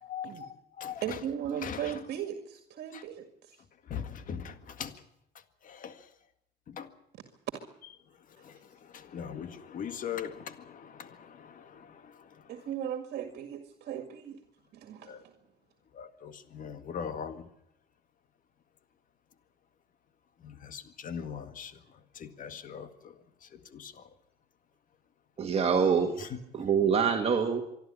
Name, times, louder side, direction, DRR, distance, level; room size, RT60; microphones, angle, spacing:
voice 1, 0.0-1.2 1.6-2.0 2.9-3.0 3.8-5.0 5.6-6.1 6.7-6.9 8.3-12.6 15.0-15.2 15.9-17.5 20.4-24.1 26.2-26.4, left 7 dB, 50° left, 1.9 m, -41 dB
voice 2, 1.0-3.6 12.5-14.4 14.7-15.3, right 9 dB, 70° right, 2.0 m, -37 dB
voice 3, 25.4-27.6, right 6 dB, 35° right, 2.0 m, -26 dB
25.0 x 12.0 x 9.9 m
cardioid pair, 110°, 17 cm